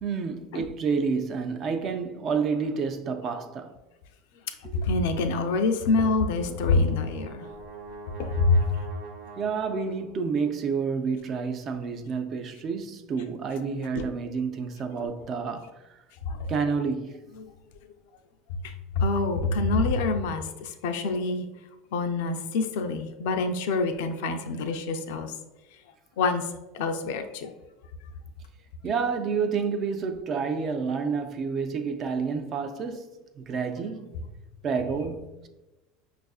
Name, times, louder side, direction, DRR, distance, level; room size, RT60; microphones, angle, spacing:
voice 1, 0.0-3.8 4.6-4.9 9.4-16.0 16.5-17.2 28.8-34.1 34.6-35.5, right 5 dB, 35° right, 0.3 m, -29 dB
voice 2, 4.7-7.5 8.2-8.8 14.0-14.1 16.2-16.5 17.4-17.5 18.5-21.5 21.9-25.4 26.2-27.5, left 3 dB, 80° left, 0.4 m, -26 dB
Brass instrument, 6.0-10.3, right 3 dB, 65° right, 0.7 m, -44 dB
5.3 x 2.4 x 2.3 m
supercardioid pair, 150°, 0 cm